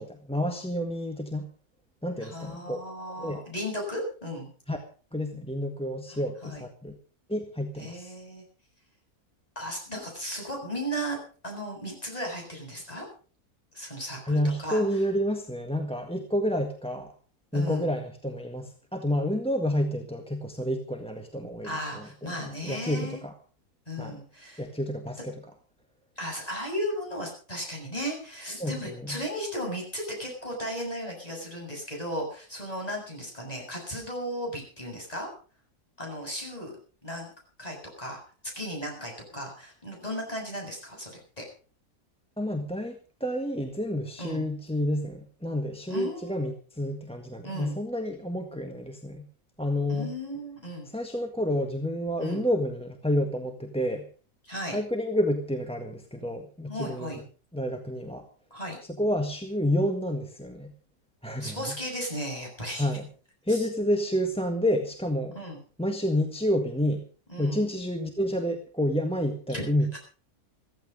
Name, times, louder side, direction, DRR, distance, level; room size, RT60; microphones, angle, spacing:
voice 1, 0.0-1.5 2.0-2.8 3.2-3.4 4.7-4.8 5.1-7.0 7.3-8.1 14.2-17.1 17.5-22.3 22.6-23.3 24.0-24.2 24.6-25.3 28.6-28.7 29.1-29.2 42.4-49.3 49.6-50.1 50.9-54.0 54.7-57.1 57.5-58.2 59.0-60.7 61.2-61.7 62.8-63.0 63.4-65.3 65.8-67.1 67.4-70.0, equal, 5° left, 5 dB, 1.5 m, -29 dB
voice 2, 2.2-4.5 6.1-6.6 7.8-8.4 9.6-11.2 11.4-13.1 13.7-14.8 17.5-17.9 21.6-23.2 23.9-24.6 26.2-35.3 36.0-36.7 37.0-37.3 37.6-38.2 38.6-41.4 44.2-44.4 45.9-46.5 47.4-47.8 49.9-50.9 52.2-52.4 54.5-54.8 56.7-57.2 58.5-58.8 61.4-62.9 63.5-63.6 65.3-65.6 67.3-67.7 69.5-69.6 69.9-70.0, equal, 25° left, 0 dB, 7.4 m, -35 dB
15.0 x 15.0 x 5.3 m, 0.39 s
omnidirectional pair, 1.7 m